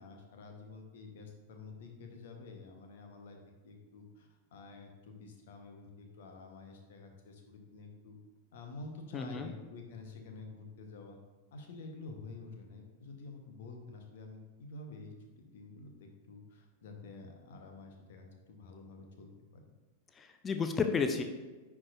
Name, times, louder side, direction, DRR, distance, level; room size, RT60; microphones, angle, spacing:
voice 1, 0.0-3.4 3.6-8.2 8.5-11.2 11.5-19.6, left 3 dB, 60° left, 3 dB, 1.1 m, -49 dB
voice 2, 9.1-9.5 20.2-21.2, left 5 dB, 20° left, 7 dB, 0.5 m, -32 dB
9.7 x 4.7 x 2.6 m, 1.2 s
figure-of-eight pair, 90°, 0 cm